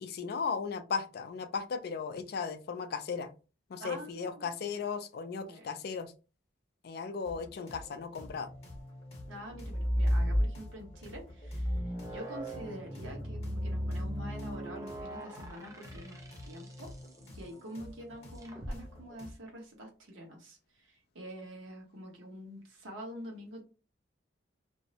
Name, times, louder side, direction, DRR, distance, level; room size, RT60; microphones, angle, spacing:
voice 1, 0.0-3.3 3.7-6.1 6.8-8.5, left 5 dB, 55° left, 9 dB, 0.3 m, -36 dB
voice 2, 3.8-4.7 5.3-5.7 9.3-16.9 17.3-23.6, equal, 80° right, 0 dB, 1.0 m, -46 dB
sound 1, 7.2-19.3, left 1 dB, 30° left, 0.9 m, -50 dB
sound 2, 9.5-10.9 11.4-16.9 18.4-18.7, equal, 15° right, 0.4 m, -33 dB
2.6 x 2.0 x 2.7 m, 0.33 s
head